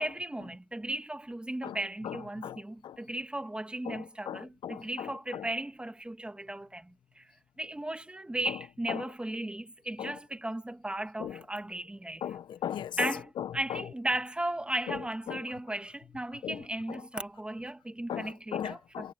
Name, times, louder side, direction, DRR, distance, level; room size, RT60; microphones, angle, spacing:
voice 1, 0.0-7.3 7.6-12.2 13.0-13.2 13.5-19.1, right 1 dB, 10° right, 2.0 m, -36 dB
voice 2, 2.0-3.0 3.8-5.5 8.4-8.6 8.9-9.1 10.0-10.2 11.2-11.4 12.2-13.9 14.9-15.5 16.4-17.0 18.1-19.1, left 10 dB, 75° left, 1.3 m, -38 dB
cardioid pair, 60°, 8 cm